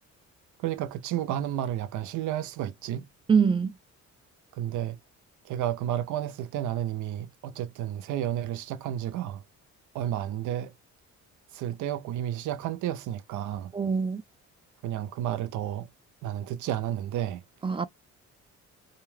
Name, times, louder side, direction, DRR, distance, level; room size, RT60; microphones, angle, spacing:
voice 1, 0.6-3.1 4.5-5.0 5.4-9.4 9.9-10.7 11.5-13.7 14.8-15.9 16.2-17.4, right 11 dB, 80° right, 0.5 m, -31 dB
voice 2, 3.3-3.7 13.7-14.2 17.6-17.9, right 6 dB, 20° right, 0.4 m, -24 dB
2.3 x 2.3 x 3.2 m
cardioid pair, 90°, 30 cm